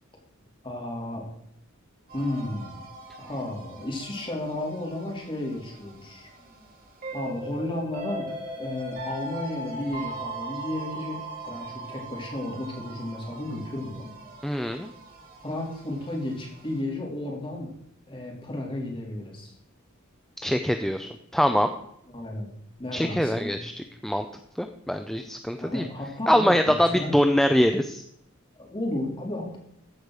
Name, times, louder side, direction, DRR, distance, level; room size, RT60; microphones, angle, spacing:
voice 1, 0.6-1.3 2.1-2.8 3.2-6.3 7.1-8.3 8.6-14.1 15.4-17.7 18.1-19.5 22.1-22.5 22.8-23.6 25.6-27.1 28.6-29.6, left 1 dB, 25° left, -1 dB, 3.4 m, -33 dB
sound 1, 2.1-16.8, right 2 dB, 45° right, 3.6 m, -40 dB
voice 2, 14.4-14.9 20.4-21.7 22.9-23.7 24.0-24.3 24.6-25.8 26.3-28.0, equal, ahead, 7 dB, 0.5 m, -23 dB
14.5 x 5.3 x 6.3 m, 0.73 s
head